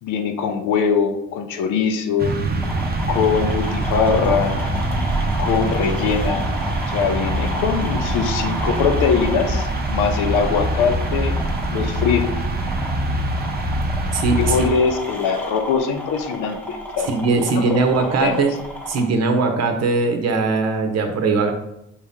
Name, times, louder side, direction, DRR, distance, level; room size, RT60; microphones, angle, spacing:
voice 1, 0.0-2.4 3.1-4.6 5.4-6.5 6.9-11.4 11.7-12.2 14.4-17.1 17.4-17.8 18.2-18.4, left 6 dB, 85° left, 6 dB, 0.6 m, -22 dB
sound 1, 2.2-14.7, right 1 dB, 30° right, 0.6 m, -24 dB
sound 2, 2.6-19.0, equal, 5° left, 0.9 m, -32 dB
voice 2, 8.4-8.8 14.1-14.6 17.1-18.5 18.9-21.5, right 4 dB, 60° right, 5 dB, 0.8 m, -20 dB
4.6 x 2.8 x 3.6 m, 0.81 s
cardioid pair, 90°, 30 cm